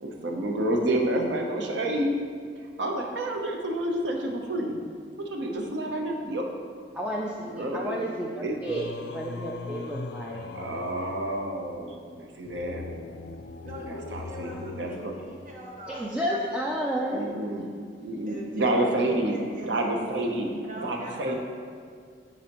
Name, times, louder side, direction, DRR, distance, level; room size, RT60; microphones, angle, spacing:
voice 1, 0.0-2.1 2.8-4.8 5.2-6.4 7.4-8.0 8.4-8.6 10.5-12.8 13.9-15.1 17.1-17.7 18.0-19.3 19.6-20.5 20.8-21.3, right 1 dB, 80° right, 2 dB, 0.8 m, -29 dB
voice 2, 6.9-10.4 15.9-17.2, equal, 5° right, -3 dB, 0.4 m, -31 dB
Singing, 8.7-16.0, left 3 dB, 65° left, 0.4 m, -40 dB
voice 3, 13.6-17.0 18.3-21.3, right 1 dB, 50° right, -2 dB, 1.1 m, -43 dB
9.4 x 4.1 x 3.0 m, 2.1 s
head